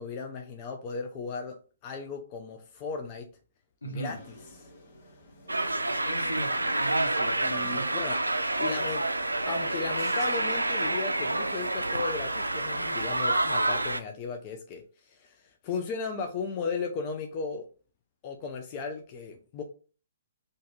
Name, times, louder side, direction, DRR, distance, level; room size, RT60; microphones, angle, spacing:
voice 1, 0.0-1.6 1.8-3.3 3.8-4.7 7.4-8.2 8.6-9.0 9.5-17.7 18.2-19.6, left 5 dB, 35° left, 4 dB, 0.4 m, -36 dB
voice 2, 3.8-4.2 6.0-7.9, right 1 dB, 75° left, 2 dB, 1.1 m, -38 dB
sound 1, 4.1-11.3, left 1 dB, 55° left, 1.5 m, -53 dB
sound 2, 5.5-14.0, right 2 dB, 90° right, 0.3 m, -28 dB
sound 3, 7.5-9.7, right 11 dB, 25° right, 0.8 m, -50 dB
2.6 x 2.5 x 3.6 m, 0.39 s
figure-of-eight pair, 130°, 0 cm